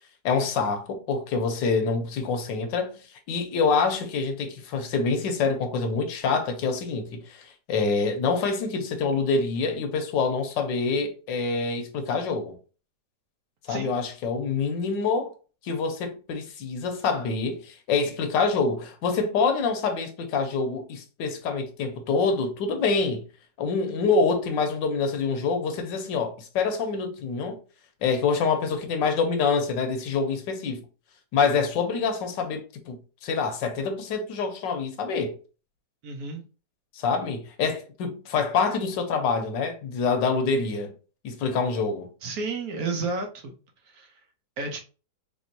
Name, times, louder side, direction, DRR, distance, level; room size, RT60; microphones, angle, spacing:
voice 1, 0.2-3.0 3.3-12.5 13.7-15.3 15.6-23.2 23.6-27.6 28.0-30.8 31.3-35.3 36.9-40.9 41.2-42.1, left 4 dB, 90° left, 1.4 m, -26 dB
voice 2, 36.0-36.5 42.2-43.5 43.8-44.2 44.6-44.8, right 3 dB, 65° right, 1.1 m, -32 dB
3.5 x 3.4 x 2.6 m
omnidirectional pair, 1.9 m